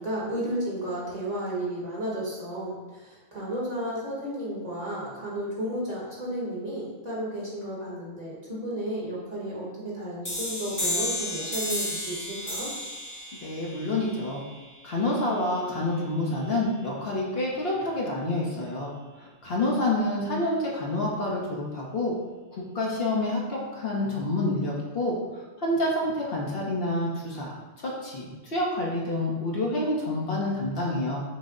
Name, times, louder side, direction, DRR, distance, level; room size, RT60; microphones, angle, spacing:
voice 1, 0.0-12.7, right 1 dB, 35° right, -6 dB, 1.1 m, -33 dB
sound 1, 10.2-15.7, left 1 dB, 20° left, 0.7 m, -33 dB
voice 2, 13.4-14.4 14.8-22.1 22.5-25.2 25.6-31.2, left 1 dB, 55° left, -4 dB, 1.0 m, -28 dB
6.0 x 2.1 x 3.7 m, 1.3 s
omnidirectional pair, 1.2 m